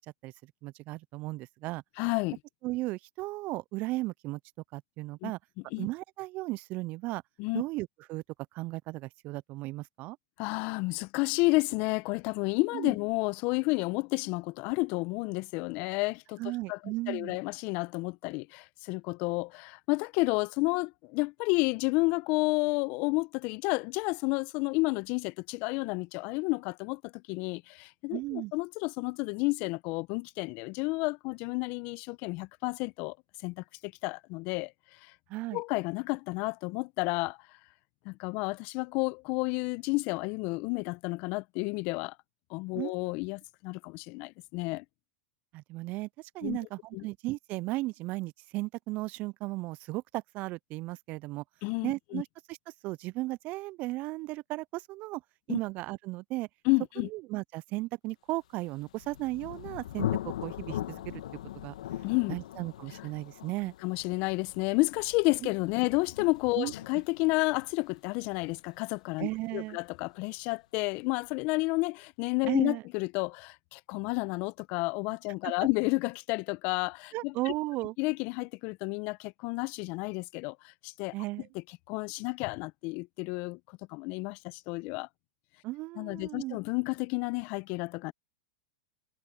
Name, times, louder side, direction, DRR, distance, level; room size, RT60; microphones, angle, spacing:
voice 1, 0.6-1.8 2.6-4.4 4.7-5.4 5.8-7.2 7.5-8.2 8.5-10.2 12.7-12.9 16.4-17.4 28.1-28.5 35.3-35.6 42.8-43.1 45.5-51.4 51.8-52.6 52.8-55.2 55.5-56.5 57.0-61.2 61.5-61.7 62.3-63.7 65.4-65.5 66.6-66.7 69.2-69.8 72.5-72.8 75.4-75.5 77.1-77.9 81.1-81.5 85.6-86.6, right 20 dB, 45° right, 0.4 m, -35 dB
voice 2, 2.0-2.4 5.2-5.3 5.7-5.9 7.4-7.6 10.4-16.4 16.7-16.8 17.1-33.2 33.4-34.7 35.0-35.1 35.5-37.4 38.0-42.1 42.5-44.8 46.4-46.6 46.9-47.0 51.6-52.2 55.5-55.6 56.6-57.1 62.0-62.4 63.8-77.3 78.0-81.1 81.9-83.6 83.9-85.1 86.0-88.1, left 26 dB, 50° left, 1.3 m, -31 dB
Thunder, 58.7-70.2, left 12 dB, 70° left, 2.0 m, -40 dB
hypercardioid pair, 100°, 4 cm